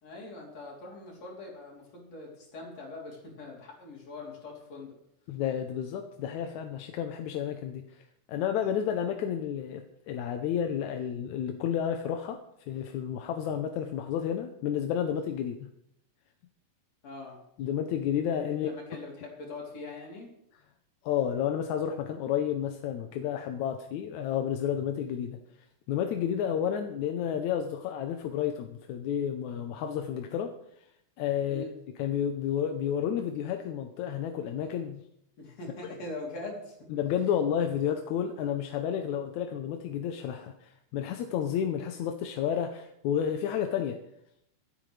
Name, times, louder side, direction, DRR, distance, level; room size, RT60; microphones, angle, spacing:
voice 1, 0.0-4.9 17.0-17.4 18.5-20.3 31.5-31.7 35.4-36.8, left 2 dB, 50° left, -2 dB, 4.5 m, -42 dB
voice 2, 5.3-7.9 8.3-12.4 12.7-15.7 17.6-18.7 21.1-25.4 25.9-30.5 31.2-31.7 32.0-35.0 36.9-44.0, left 9 dB, 70° left, 5 dB, 2.0 m, -31 dB
25.0 x 8.9 x 3.3 m, 0.75 s
omnidirectional pair, 3.8 m